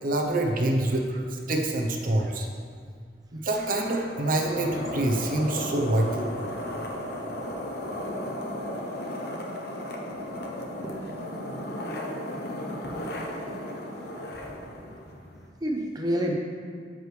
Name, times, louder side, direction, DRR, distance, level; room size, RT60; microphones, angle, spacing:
voice 1, 0.0-2.5 3.4-6.3, right 1 dB, 50° right, 2 dB, 0.8 m, -26 dB
sound 1, 3.9-15.5, left 1 dB, 65° left, 0.9 m, -35 dB
voice 2, 14.4-15.0 15.6-16.3, equal, 20° right, -1 dB, 0.7 m, -31 dB
12.5 x 4.9 x 3.3 m, 2.1 s
head